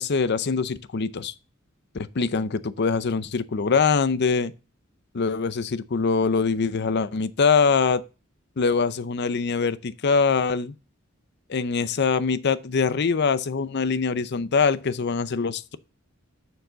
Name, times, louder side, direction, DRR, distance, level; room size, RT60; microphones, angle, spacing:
voice 1, 0.0-1.3 1.9-4.5 5.1-8.0 8.6-10.7 11.5-15.8, left 5 dB, 55° left, 0.6 m, -23 dB
6.9 x 6.6 x 3.9 m
head